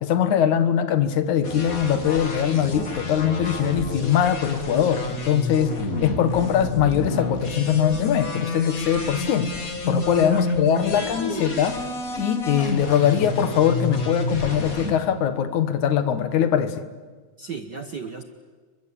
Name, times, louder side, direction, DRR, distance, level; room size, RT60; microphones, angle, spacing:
voice 1, 0.0-9.5 9.9-11.8 12.2-16.9, left 9 dB, 75° left, 11 dB, 2.8 m, -22 dB
sound 1, 1.4-14.9, left 2 dB, 30° left, 2.7 m, -29 dB
voice 2, 10.9-11.4 17.4-18.2, right 5 dB, 50° right, 7 dB, 1.3 m, -35 dB
29.5 x 23.5 x 8.6 m, 1.4 s
omnidirectional pair, 3.5 m